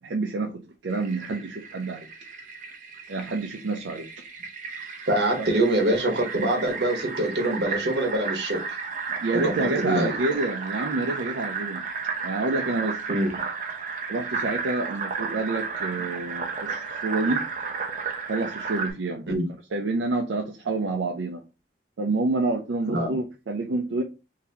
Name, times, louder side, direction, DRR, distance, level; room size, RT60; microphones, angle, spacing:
voice 1, 0.0-0.5 0.8-2.1 3.1-4.1 5.4-5.5 9.2-11.8 12.2-13.0 14.1-17.4 18.3-19.3 19.7-21.4 22.0-24.0, right 3 dB, 80° right, 0.5 m, -28 dB
Fill (with liquid), 0.9-18.9, right 5 dB, 45° right, 0.7 m, -33 dB
voice 2, 5.1-8.6 9.3-10.1 13.1-13.3 19.3-19.5 22.9-23.2, right 1 dB, 65° right, 1.3 m, -24 dB
3.8 x 2.8 x 2.9 m
head